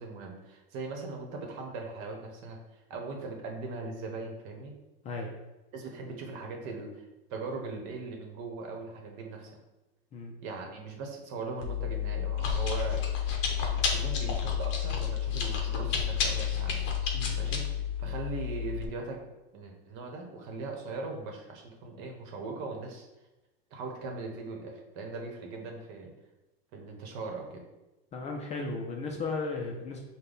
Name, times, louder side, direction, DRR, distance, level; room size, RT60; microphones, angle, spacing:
voice 1, 0.0-4.7 5.7-9.5 10.4-13.0 13.6-16.8 17.4-17.6 18.0-19.3 19.5-23.1 23.7-26.1 26.7-27.6, right 3 dB, 55° right, 2 dB, 1.0 m, -40 dB
Chewing mastication, 11.6-18.9, left 8 dB, 40° left, 0.8 m, -30 dB
voice 2, 28.1-30.0, left 3 dB, 25° left, 1 dB, 0.4 m, -35 dB
5.1 x 2.2 x 3.9 m, 1.0 s
supercardioid pair, 135°, 30 cm